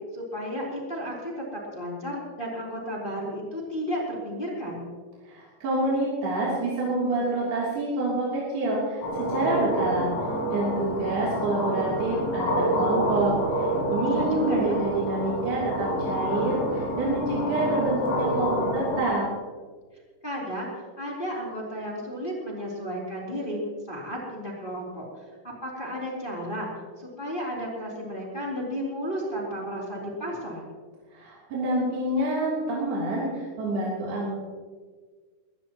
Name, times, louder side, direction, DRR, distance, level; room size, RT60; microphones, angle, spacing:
voice 1, 0.1-4.9 14.0-14.8 20.2-20.7 21.0-23.6 23.9-25.0 25.6-26.7 27.0-30.6, equal, 15° left, -3 dB, 3.0 m, -33 dB
voice 2, 5.3-10.1 10.5-19.3 31.1-34.4, right 2 dB, 60° right, -7 dB, 5.1 m, -27 dB
sound 1, 9.0-19.0, equal, 90° left, 6.9 m, -28 dB
21.5 x 18.0 x 3.0 m, 1.5 s
omnidirectional pair, 5.2 m